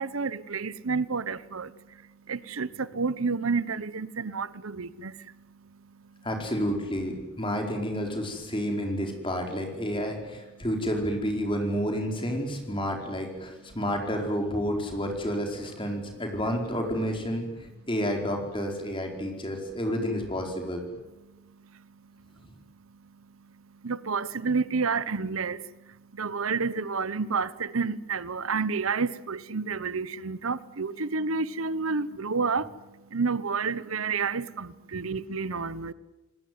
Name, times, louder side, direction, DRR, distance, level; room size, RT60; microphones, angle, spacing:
voice 1, 0.0-1.7 2.3-5.1 23.8-25.6 26.2-32.6 33.1-35.9, right 4 dB, 85° right, 0.9 m, -29 dB
voice 2, 6.2-20.8, equal, 25° left, 4.7 m, -30 dB
27.5 x 19.5 x 9.6 m
head